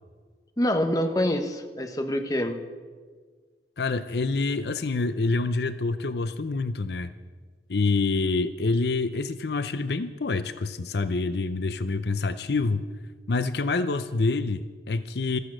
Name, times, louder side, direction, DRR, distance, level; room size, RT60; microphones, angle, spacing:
voice 1, 0.6-2.6, left 1 dB, 20° left, 6 dB, 1.0 m, -26 dB
voice 2, 3.8-7.1 7.7-12.8 13.3-15.4, left 3 dB, 70° left, 12 dB, 0.6 m, -27 dB
15.0 x 14.0 x 6.3 m, 1.5 s
head